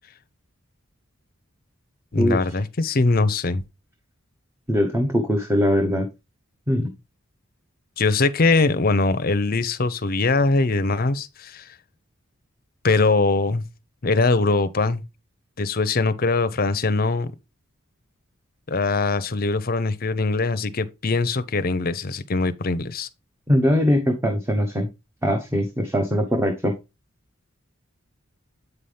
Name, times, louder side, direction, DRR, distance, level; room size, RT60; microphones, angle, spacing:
voice 1, 2.1-3.6 8.0-11.7 12.8-13.6 14.0-15.0 15.6-17.3 18.7-23.1, left 3 dB, 45° left, 0.6 m, -22 dB
voice 2, 4.7-6.1 6.7-6.9 23.5-24.9 25.2-26.7, equal, 10° right, 0.9 m, -21 dB
8.1 x 5.6 x 3.3 m
head